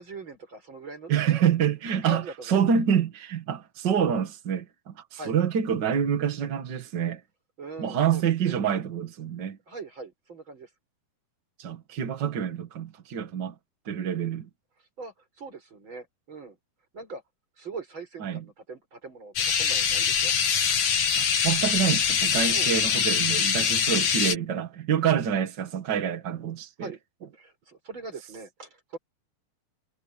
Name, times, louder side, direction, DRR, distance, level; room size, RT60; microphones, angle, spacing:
voice 1, 0.0-1.1 2.0-2.5 5.1-5.4 7.6-8.5 9.7-10.7 15.0-16.6 16.9-17.2 17.6-20.3 22.5-22.7 26.8-27.0 27.3-29.0, right 4 dB, 30° right, 6.5 m, -41 dB
voice 2, 1.1-7.2 7.8-9.6 11.6-13.5 13.8-14.5 18.2-18.4 21.2-26.9, right 8 dB, 70° right, 1.0 m, -27 dB
sound 1, 19.4-24.4, left 7 dB, 55° left, 3.3 m, -24 dB
omnidirectional pair, 4.6 m